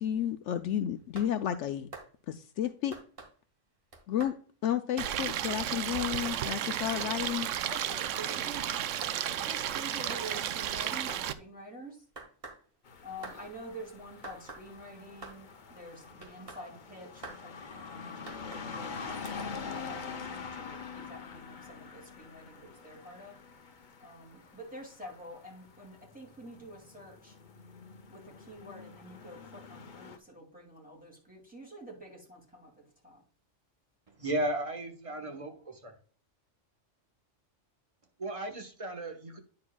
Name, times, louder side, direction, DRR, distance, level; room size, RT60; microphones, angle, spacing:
voice 1, 0.0-1.9 2.3-3.0 4.1-4.3 4.6-7.5, left 10 dB, 75° left, 9 dB, 0.9 m, -32 dB
sound 1, 1.0-1.3 1.9-2.1 2.9-3.3 3.9-4.4 5.0-5.2 6.0-6.4 7.0-7.2 8.0-8.4 9.0-9.2 10.1-10.5 11.1-11.3 12.2-12.6 13.2-13.4 14.2-14.6 15.2-15.4 16.2-16.6 17.2-17.4 18.3-18.7 19.3-19.4, right 3 dB, 50° right, 1.9 m, -45 dB
Stream, 5.0-11.3, right 10 dB, 85° right, 0.9 m, -33 dB
voice 2, 7.7-8.9 9.3-12.0 13.0-17.5 17.9-19.0 19.4-23.4 24.0-27.4 28.1-33.2, right 1 dB, 5° right, -2 dB, 2.3 m, -47 dB
sound 2, 12.9-30.2, left 5 dB, 45° left, 0.9 m, -45 dB
voice 3, 34.2-35.9 38.2-39.4, right 1 dB, 30° right, 5 dB, 1.2 m, -35 dB
9.6 x 6.7 x 2.2 m, 0.42 s
omnidirectional pair, 1.3 m